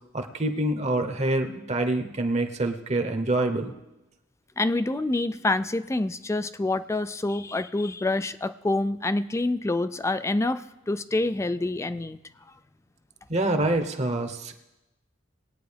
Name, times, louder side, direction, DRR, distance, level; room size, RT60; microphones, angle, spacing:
voice 1, 0.1-3.7 13.3-14.5, right 2 dB, 35° right, 5 dB, 0.9 m, -26 dB
voice 2, 4.6-12.2, left 2 dB, 15° left, 13 dB, 0.3 m, -27 dB
21.0 x 9.1 x 3.4 m, 0.96 s
head